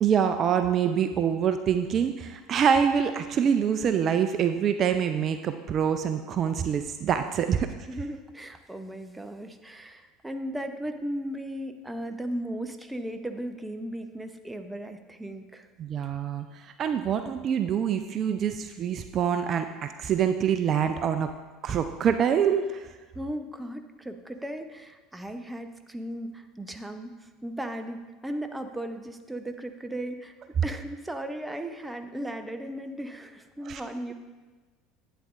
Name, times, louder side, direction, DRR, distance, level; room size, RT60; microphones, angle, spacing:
voice 1, 0.0-7.7 15.8-21.3 21.6-22.9 33.7-33.8, right 8 dB, 40° right, 9 dB, 0.4 m, -25 dB
voice 2, 7.9-15.7 23.1-30.3 30.6-34.1, right 1 dB, 10° right, 7 dB, 0.8 m, -36 dB
11.0 x 8.5 x 2.5 m, 1.3 s
figure-of-eight pair, 70°, 0 cm